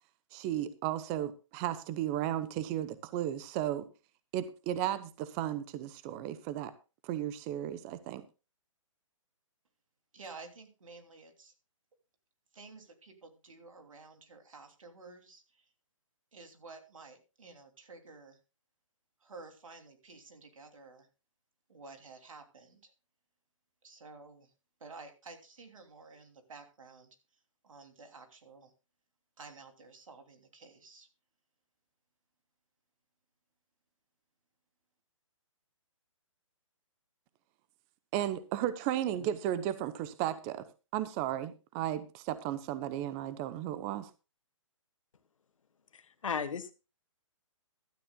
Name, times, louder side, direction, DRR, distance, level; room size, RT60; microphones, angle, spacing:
voice 1, 0.3-3.9 4.3-6.7 7.0-8.2 38.1-40.6 40.9-44.1, right 12 dB, 25° right, 13 dB, 0.8 m, -34 dB
voice 2, 10.1-11.5 12.5-15.6 16.3-18.4 19.2-21.1 21.7-22.9 23.8-24.5 24.8-27.2 27.6-28.7 29.4-31.1, right 3 dB, 80° right, 5 dB, 3.0 m, -52 dB
voice 3, 45.9-46.7, left 6 dB, 75° left, 11 dB, 1.6 m, -35 dB
15.5 x 12.5 x 2.3 m, 0.30 s
hypercardioid pair, 145°, 17 cm